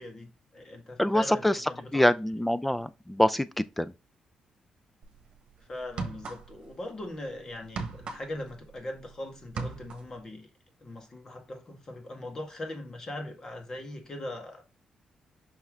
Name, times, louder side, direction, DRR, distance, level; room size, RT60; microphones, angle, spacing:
voice 1, 0.0-2.1 5.7-10.5 10.8-14.6, left 1 dB, 30° left, 1.8 m, -40 dB
voice 2, 1.0-1.6 1.9-3.9, left 1 dB, 5° left, 0.4 m, -25 dB
sound 1, 5.0-5.2 5.8-6.7 7.0-9.1 9.4-10.2, right 4 dB, 55° right, 1.3 m, -37 dB
5.7 x 5.6 x 3.6 m
wide cardioid pair, 155°, 2 cm